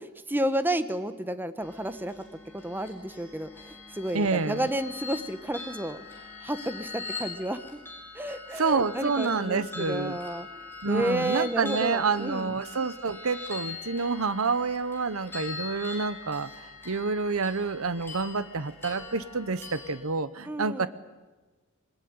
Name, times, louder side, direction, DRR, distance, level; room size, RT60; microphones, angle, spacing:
voice 1, 0.0-2.2 2.5-6.0 6.4-7.8 8.1-12.6 20.4-20.9, right 1 dB, 10° right, 11 dB, 1.1 m, -31 dB
sound 1, 1.6-20.0, left 4 dB, 10° left, 5.8 m, -42 dB
voice 2, 4.1-4.6 8.6-10.2 10.8-16.5 16.9-20.9, right 4 dB, 70° right, 15 dB, 0.9 m, -28 dB
22.0 x 20.0 x 9.6 m, 1.2 s
head